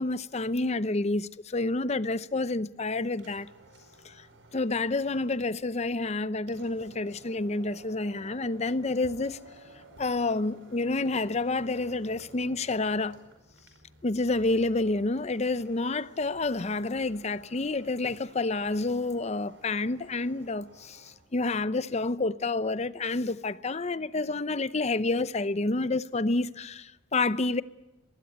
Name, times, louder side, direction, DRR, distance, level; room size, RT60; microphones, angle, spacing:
voice 1, 0.0-3.5 4.0-4.2 4.5-9.4 10.0-13.2 14.0-27.6, left 3 dB, 35° left, 0.7 m, -29 dB
sound 1, 3.1-21.3, right 2 dB, 90° right, 4.9 m, -54 dB
23.5 x 20.0 x 8.0 m
head